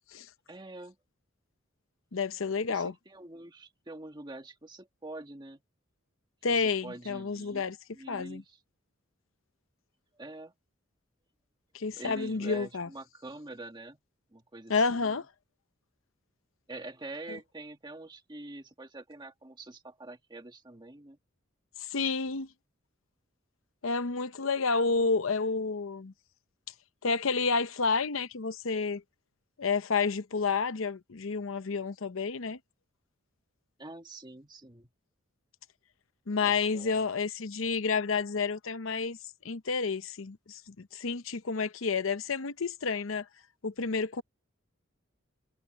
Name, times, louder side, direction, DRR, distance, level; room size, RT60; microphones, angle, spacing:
voice 1, 0.5-1.0 2.7-5.6 6.5-7.7 7.9-8.6 10.2-10.5 12.0-14.0 14.3-15.2 16.7-21.2 33.8-34.9 36.4-37.1, right 2 dB, 20° right, 1.8 m, -45 dB
voice 2, 2.1-2.9 6.4-7.8 8.1-8.4 11.7-12.9 14.7-15.3 17.3-17.4 21.8-22.5 23.8-26.1 27.0-29.0 29.6-32.6 36.3-39.2 39.4-43.3 43.6-44.2, left 4 dB, 75° left, 0.8 m, -30 dB
head